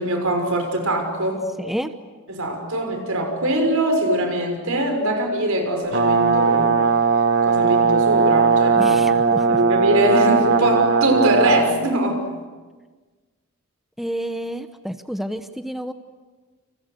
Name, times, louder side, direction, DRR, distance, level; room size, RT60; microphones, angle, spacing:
voice 1, 0.0-1.4 2.3-6.7 7.4-9.0 9.5-12.2, right 1 dB, 70° right, 4 dB, 6.4 m, -22 dB
voice 2, 1.6-1.9 8.8-9.6 14.0-15.9, equal, ahead, 7 dB, 0.9 m, -29 dB
Brass instrument, 5.9-11.7, right 5 dB, 55° right, 1.9 m, -18 dB
29.0 x 28.0 x 6.7 m, 1.3 s
head